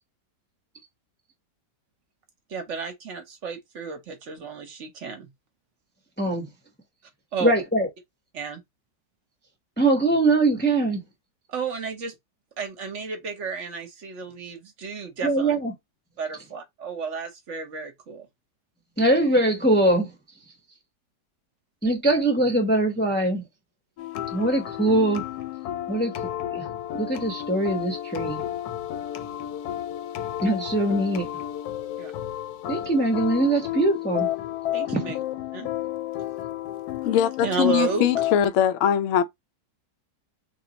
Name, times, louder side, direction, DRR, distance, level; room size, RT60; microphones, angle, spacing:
voice 1, 2.5-5.3 7.3-7.5 8.3-8.6 11.5-12.1 12.6-15.6 16.2-18.3 32.0-32.1 34.7-35.2 35.5-35.7 37.4-38.1, right 5 dB, 55° right, 0.9 m, -32 dB
voice 2, 7.4-7.9 9.8-11.0 15.2-15.7 19.0-20.1 21.8-23.4 24.3-25.2 25.9-26.1 26.5-26.6 26.9-28.4 30.4-31.3 32.7-34.3, right 2 dB, 10° left, 0.5 m, -22 dB
sound 1, 24.0-38.4, left 12 dB, 70° left, 1.0 m, -32 dB
voice 3, 37.0-39.2, left 9 dB, 85° left, 0.6 m, -21 dB
3.5 x 2.4 x 3.9 m
omnidirectional pair, 1.9 m